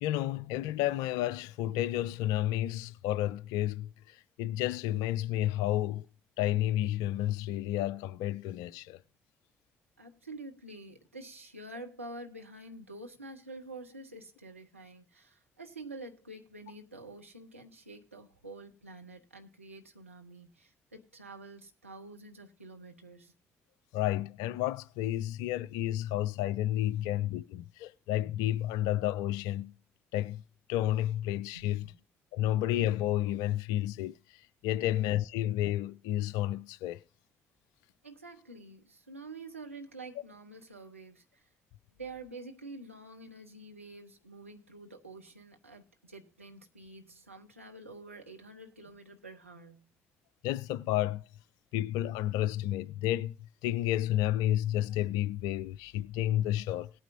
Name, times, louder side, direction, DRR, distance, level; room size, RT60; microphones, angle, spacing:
voice 1, 0.0-3.9 4.4-6.0 6.4-9.0 23.9-29.7 30.1-30.4 30.7-31.9 32.3-34.1 34.6-37.0 50.4-51.2 51.7-53.3 53.6-56.9, left 13 dB, 65° left, 0.4 m, -31 dB
voice 2, 10.0-23.3 27.0-27.1 31.5-31.7 34.7-34.9 38.0-41.4 42.0-49.9, right 2 dB, 90° right, 0.9 m, -48 dB
18.0 x 9.0 x 2.7 m
figure-of-eight pair, 45°, 7 cm